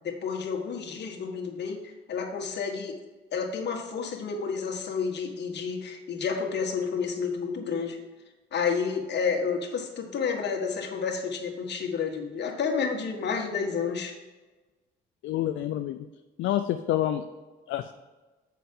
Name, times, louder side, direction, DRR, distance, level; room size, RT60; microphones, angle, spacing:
voice 1, 0.0-2.9 3.3-8.0 8.5-14.1, left 5 dB, 60° left, 2 dB, 1.6 m, -30 dB
voice 2, 15.2-16.0 16.4-17.2 17.7-17.9, left 12 dB, 80° left, 8 dB, 0.5 m, -27 dB
7.4 x 5.7 x 5.4 m, 1.2 s
cardioid pair, 90°, 20 cm